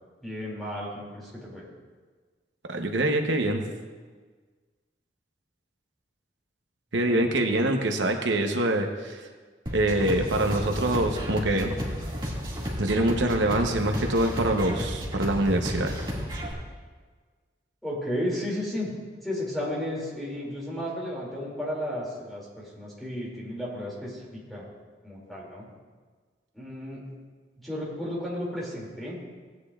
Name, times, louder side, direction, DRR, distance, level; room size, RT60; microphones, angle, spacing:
voice 1, 0.2-1.6 6.9-7.3 17.8-18.9 19.2-24.7 25.0-25.7 26.5-27.0 27.6-29.2, left 1 dB, ahead, -6 dB, 2.5 m, -33 dB
voice 2, 2.7-3.7 6.9-9.3 9.7-11.8 12.8-16.0, right 1 dB, 90° right, 3 dB, 0.9 m, -25 dB
sound 1, 9.7-16.5, equal, 25° right, 2.0 m, -32 dB
17.0 x 9.4 x 2.4 m, 1.5 s
head